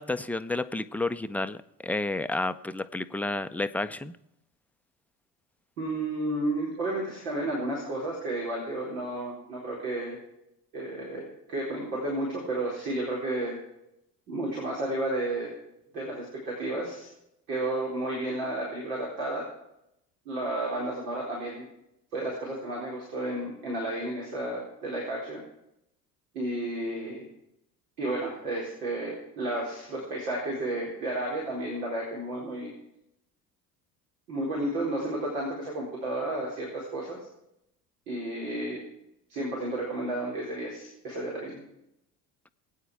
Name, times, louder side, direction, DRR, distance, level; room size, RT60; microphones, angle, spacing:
voice 1, 0.0-4.1, left 2 dB, 5° left, 11 dB, 0.6 m, -31 dB
voice 2, 5.8-10.2 10.7-13.6 14.3-15.5 15.9-17.1 17.5-19.4 20.3-21.6 22.1-25.4 26.3-27.2 28.0-32.7 34.3-37.2 38.1-38.8 39.3-41.6, right 1 dB, 75° right, -4 dB, 4.5 m, -32 dB
22.0 x 9.1 x 4.9 m, 0.82 s
hypercardioid pair, 65°, 49 cm